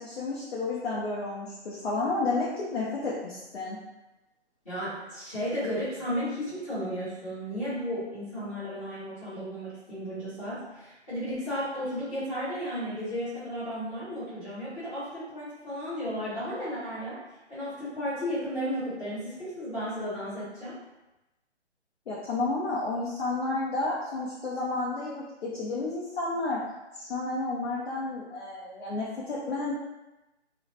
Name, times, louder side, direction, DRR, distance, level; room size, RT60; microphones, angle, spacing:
voice 1, 0.0-3.8 22.1-26.6 26.9-29.7, left 3 dB, 60° left, -5 dB, 0.5 m, -31 dB
voice 2, 4.6-17.2 17.5-20.8, equal, 10° left, -15 dB, 0.7 m, -34 dB
2.2 x 2.0 x 2.7 m, 1.0 s
figure-of-eight pair, 155°, 35 cm